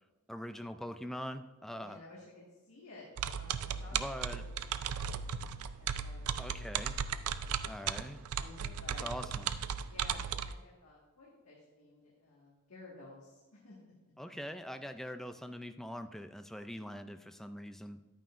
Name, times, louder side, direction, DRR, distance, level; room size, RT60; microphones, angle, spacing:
voice 1, 0.3-2.0 3.9-4.4 6.4-6.9 7.7-8.2 8.9-9.5 14.2-18.0, equal, ahead, 9 dB, 0.3 m, -43 dB
voice 2, 1.7-5.4 5.8-7.7 8.4-9.1 9.8-13.8, left 2 dB, 65° left, -5 dB, 1.7 m, -55 dB
sound 1, 3.2-10.5, right 8 dB, 75° right, 0.4 m, -36 dB
10.5 x 9.0 x 2.5 m, 1.2 s
head